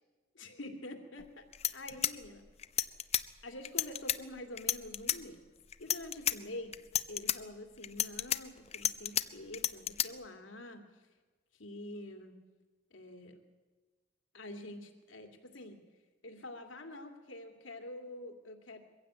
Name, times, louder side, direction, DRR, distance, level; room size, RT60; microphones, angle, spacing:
voice 1, 0.3-1.4 1.7-2.4 3.4-5.4 5.8-6.8 7.1-10.8 11.6-12.3 12.9-13.4 14.3-15.8 16.2-18.8, left 1 dB, 80° left, 6 dB, 2.5 m, -46 dB
sound 1, 1.2-1.3 1.5-3.2 3.6-4.2 4.6-5.2 5.7-6.3 6.7-7.4 7.8-9.2 9.5-10.1, left 10 dB, 35° left, 0.6 m, -31 dB
23.0 x 15.5 x 8.8 m, 1.3 s
head